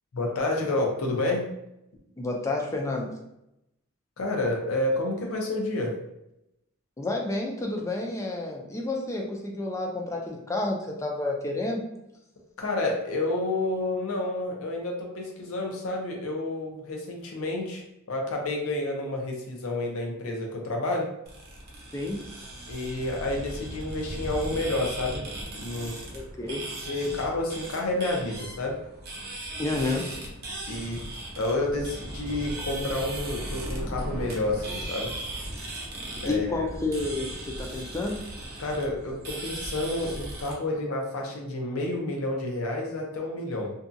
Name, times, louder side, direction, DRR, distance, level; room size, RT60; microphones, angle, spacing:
voice 1, 0.1-1.5 4.2-5.9 12.6-17.8 18.1-21.1 22.7-25.2 25.5-26.0 26.9-28.8 30.7-31.0 31.4-35.1 36.2-36.7 38.6-43.7, left 2 dB, 80° left, 0 dB, 0.6 m, -29 dB
voice 2, 2.2-3.1 7.0-11.8 21.9-22.2 26.1-26.7 29.6-30.1 36.1-38.2, left 2 dB, 15° left, 1 dB, 0.4 m, -30 dB
sound 1, 21.2-40.5, right 1 dB, 50° right, 0.7 m, -37 dB
2.6 x 2.3 x 2.5 m, 0.85 s
head